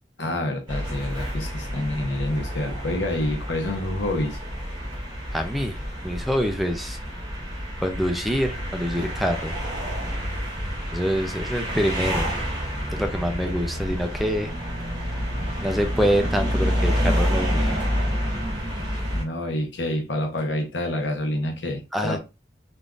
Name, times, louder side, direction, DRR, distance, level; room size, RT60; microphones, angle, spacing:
voice 1, 0.2-4.4 19.1-22.2, left 1 dB, 85° left, 0.8 m, -27 dB
sound 1, 0.7-19.2, equal, 25° right, 1.7 m, -28 dB
voice 2, 5.3-5.8 6.0-7.0 7.8-9.6 10.9-12.3 12.9-14.5 15.6-17.8 21.9-22.2, equal, ahead, 0.4 m, -25 dB
3.5 x 2.5 x 2.4 m
head